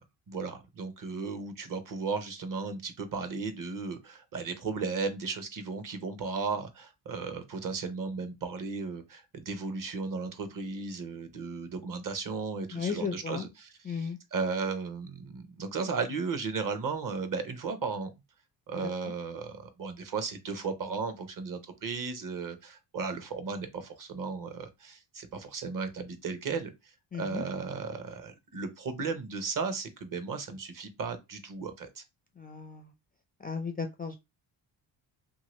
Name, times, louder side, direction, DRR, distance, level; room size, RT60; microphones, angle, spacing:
voice 1, 0.3-18.1 18.7-26.7 27.2-32.0, right 4 dB, 45° right, 0.8 m, -35 dB
voice 2, 12.7-13.5 13.9-14.2 27.1-27.4 32.4-32.9 33.4-34.2, left 5 dB, 20° left, 0.3 m, -35 dB
2.8 x 2.7 x 3.0 m
cardioid pair, 90°, 47 cm